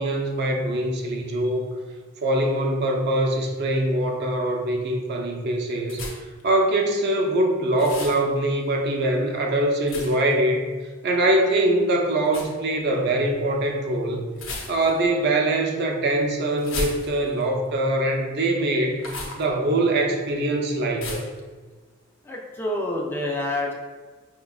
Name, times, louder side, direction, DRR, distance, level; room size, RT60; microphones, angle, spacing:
voice 1, 0.0-1.7 2.2-6.0 6.4-10.6 11.0-14.3 14.7-19.0 19.3-21.2, right 1 dB, 55° right, 2 dB, 0.5 m, -23 dB
sound 1, 5.9-6.4 7.8-8.2 9.9-10.3 12.3-12.5 14.3-15.1 16.6-17.4 19.0-19.4 21.0-21.4, left 2 dB, 80° left, 0.7 m, -34 dB
voice 2, 22.2-23.7, left 1 dB, 10° left, -2 dB, 0.3 m, -27 dB
5.4 x 2.3 x 2.3 m, 1.4 s
head